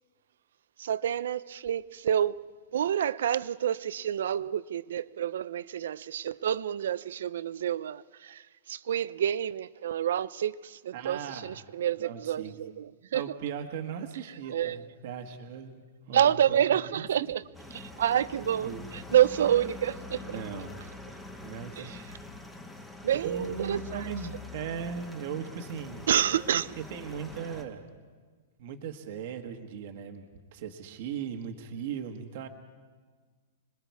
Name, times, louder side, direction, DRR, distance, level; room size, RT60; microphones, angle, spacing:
voice 1, 0.8-2.4 2.7-13.2 14.5-14.8 16.1-17.4 17.7-20.4 21.8-22.0 23.0-24.0 26.1-26.7, right 10 dB, 65° right, 0.6 m, -28 dB
voice 2, 10.9-11.6 12.0-12.5 13.1-17.1 17.9-18.0 18.6-18.9 20.2-20.8 21.4-22.1 23.1-26.1 26.8-27.9 28.6-32.5, right 7 dB, 40° right, 1.4 m, -38 dB
sound 1, 17.5-27.6, left 3 dB, 5° left, 1.1 m, -44 dB
26.5 x 21.0 x 4.7 m
supercardioid pair, 180°, 0 cm